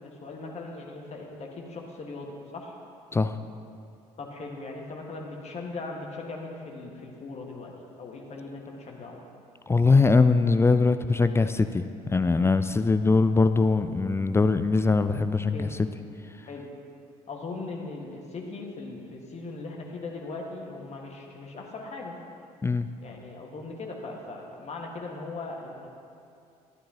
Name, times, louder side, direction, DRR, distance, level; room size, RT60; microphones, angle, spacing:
voice 1, 0.0-2.8 4.2-7.7 8.0-9.2 15.5-15.7 16.4-16.7 17.3-22.1 23.0-25.9, left 3 dB, 35° left, 0 dB, 1.6 m, -39 dB
voice 2, 9.7-15.8 22.6-22.9, left 3 dB, 15° left, 10 dB, 0.4 m, -22 dB
12.5 x 11.5 x 2.9 m, 2.5 s
figure-of-eight pair, 55°, 20 cm